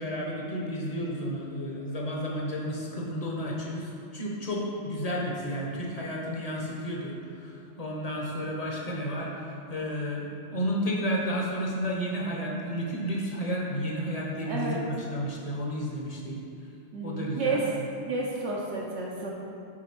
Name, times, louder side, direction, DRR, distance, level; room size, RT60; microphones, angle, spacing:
voice 1, 0.0-16.4 17.0-17.8, equal, 35° left, -3 dB, 0.9 m, -32 dB
voice 2, 14.5-14.8 16.9-17.6 17.9-19.3, right 3 dB, 75° right, -4 dB, 1.0 m, -31 dB
6.3 x 4.1 x 4.5 m, 2.6 s
omnidirectional pair, 1.2 m